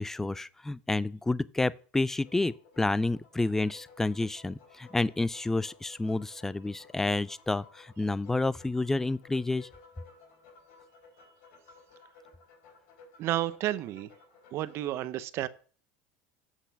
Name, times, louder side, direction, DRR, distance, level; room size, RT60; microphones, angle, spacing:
voice 1, 0.0-9.7, left 2 dB, 5° left, 0.3 m, -30 dB
sound 1, 2.0-14.9, left 4 dB, 75° left, 4.5 m, -57 dB
voice 2, 13.2-14.1 14.5-15.5, right 14 dB, 50° right, 0.7 m, -31 dB
8.3 x 5.7 x 5.8 m
supercardioid pair, 125°, 6 cm